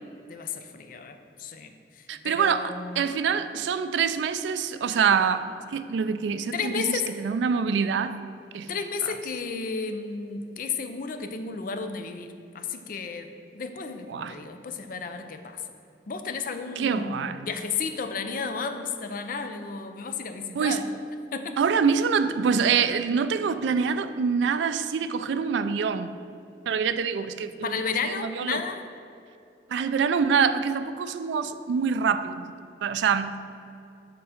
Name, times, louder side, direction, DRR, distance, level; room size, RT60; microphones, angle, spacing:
voice 1, 0.3-3.1 6.5-7.1 8.7-12.3 12.5-13.3 13.5-15.6 16.1-21.0 21.3-21.6 27.6-28.8, left 5 dB, 50° left, 7 dB, 0.4 m, -33 dB
voice 2, 2.1-5.4 5.7-8.2 8.5-8.7 14.1-14.4 16.8-17.4 20.6-20.8 21.6-26.1 26.7-27.7 28.1-28.6 29.7-32.5 32.8-33.3, right 6 dB, 80° right, 11 dB, 0.3 m, -25 dB
6.7 x 3.7 x 5.6 m, 2.7 s
head